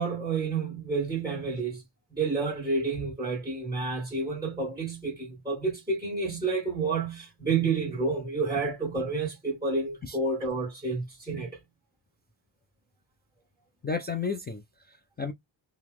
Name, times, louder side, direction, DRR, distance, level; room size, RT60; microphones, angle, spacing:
voice 1, 0.0-1.8 2.1-11.6, right 4 dB, 10° right, 1.9 m, -30 dB
voice 2, 13.8-15.3, left 5 dB, 25° left, 0.3 m, -33 dB
3.0 x 2.9 x 3.4 m
wide cardioid pair, 170°, 48 cm